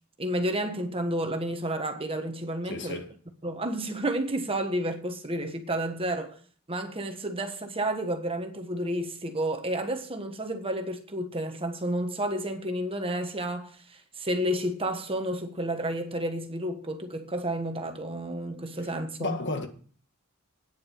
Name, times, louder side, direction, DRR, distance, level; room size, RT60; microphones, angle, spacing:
voice 1, 0.2-3.0 3.4-6.4 6.7-19.4, right 1 dB, 25° right, 1.4 m, -31 dB
voice 2, 2.6-3.1 19.2-19.7, left 2 dB, 55° left, 1.8 m, -32 dB
9.6 x 8.4 x 6.5 m
head